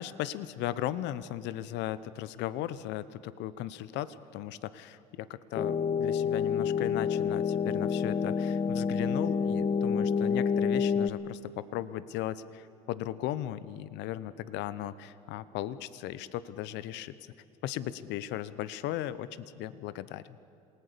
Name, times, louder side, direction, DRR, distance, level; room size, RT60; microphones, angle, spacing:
voice 1, 0.0-17.1 17.6-20.4, left 12 dB, 65° left, 16 dB, 1.0 m, -37 dB
sound 1, 5.6-11.1, left 6 dB, 35° left, 1.1 m, -28 dB
27.5 x 19.0 x 6.9 m, 2.7 s
hypercardioid pair, 75°, 20 cm